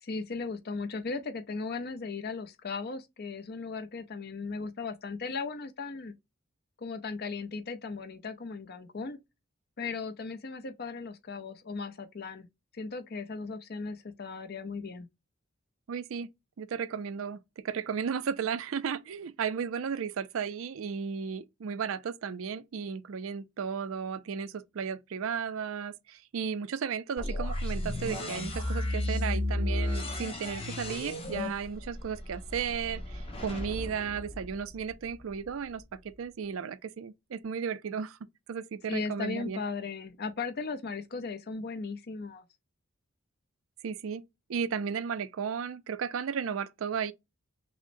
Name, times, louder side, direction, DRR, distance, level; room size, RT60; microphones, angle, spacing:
voice 1, 0.0-6.1 6.8-9.2 9.8-12.5 12.7-15.1 38.9-42.4, left 4 dB, 50° left, 0.6 m, -37 dB
voice 2, 15.9-16.3 16.6-17.4 17.6-38.2 38.5-39.6 43.8-44.2 44.5-47.1, right 6 dB, 75° right, 0.4 m, -34 dB
sound 1, 27.2-35.1, left 1 dB, 30° left, 0.9 m, -34 dB
6.1 x 2.1 x 2.6 m
head